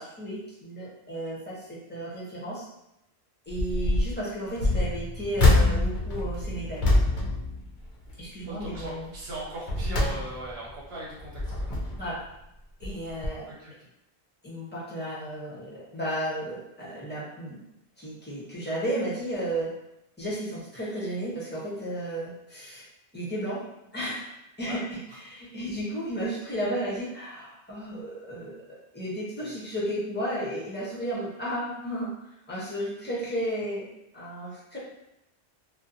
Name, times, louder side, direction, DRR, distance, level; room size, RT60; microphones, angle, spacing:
voice 1, 0.0-2.7 3.5-6.9 8.2-9.1 12.0-12.2 12.8-13.5 14.4-17.6 18.0-19.7 20.2-22.8 23.1-24.3 24.6-28.6 28.9-32.1 32.5-33.9 34.1-34.8, right 1 dB, 10° left, -7 dB, 0.7 m, -33 dB
sound 1, 3.5-4.1 4.5-8.2 8.6-8.9 9.4-10.7 11.2-12.1 12.8-13.0 13.2-13.3, left 2 dB, 60° left, 0.6 m, -25 dB
voice 2, 8.5-11.8 13.6-13.7 24.6-24.8 29.4-29.6, right 2 dB, 70° right, -4 dB, 1.0 m, -39 dB
2.5 x 2.2 x 2.5 m, 0.84 s
omnidirectional pair, 1.1 m